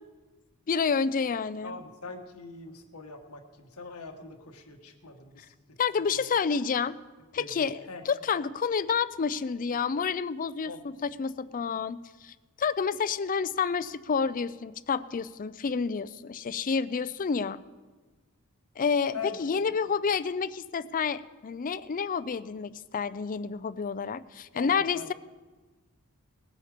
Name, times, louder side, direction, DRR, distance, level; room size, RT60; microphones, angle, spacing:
voice 1, 0.7-1.8 5.8-7.0 7.3-17.6 18.8-25.1, left 5 dB, 40° left, 16 dB, 0.4 m, -29 dB
voice 2, 1.6-5.8 6.0-6.3 7.4-8.0 10.6-10.8 19.1-19.7 24.5-25.1, left 5 dB, 85° left, 4 dB, 1.6 m, -42 dB
20.0 x 8.5 x 5.1 m, 1.3 s
head